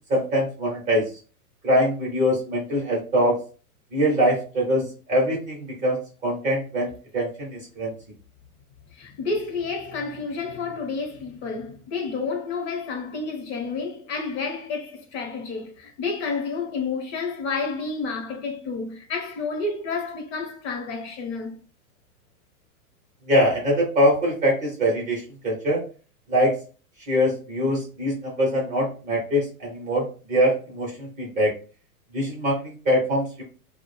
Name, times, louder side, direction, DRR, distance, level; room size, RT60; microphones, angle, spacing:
voice 1, 0.1-1.1 1.6-3.4 3.9-7.9 23.3-25.8 26.3-26.6 27.1-31.5 32.1-33.4, equal, 15° right, 0.6 m, -23 dB
voice 2, 8.9-21.6, left 4 dB, 45° left, 0.8 m, -30 dB
2.3 x 2.1 x 3.0 m
hypercardioid pair, 130°, 46 cm